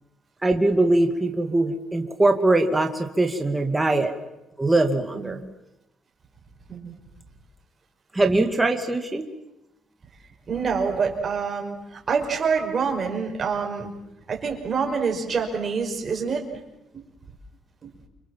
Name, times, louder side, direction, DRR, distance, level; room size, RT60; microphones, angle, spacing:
voice 1, 0.4-4.1 4.6-5.4 8.1-9.3, right 2 dB, 10° right, 4 dB, 2.3 m, -22 dB
voice 2, 10.5-13.9 14.3-16.4 16.9-17.1 17.8-17.9, right 5 dB, 35° right, 2 dB, 5.7 m, -26 dB
29.5 x 26.0 x 7.5 m, 0.92 s
cardioid pair, 135°, 0 cm